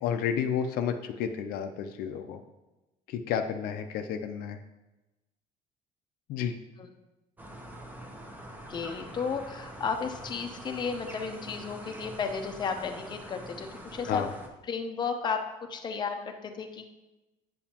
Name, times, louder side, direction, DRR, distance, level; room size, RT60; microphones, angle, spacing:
voice 1, 0.0-2.4 3.1-4.6 6.3-6.5 14.1-14.3, left 8 dB, 80° left, 6 dB, 0.6 m, -31 dB
sound 1, 7.4-14.5, right 1 dB, 10° right, 0.8 m, -45 dB
voice 2, 8.7-14.2 14.6-17.0, left 5 dB, 30° left, 4 dB, 0.7 m, -33 dB
8.4 x 7.0 x 2.9 m, 1.0 s
cardioid pair, 145°, 15 cm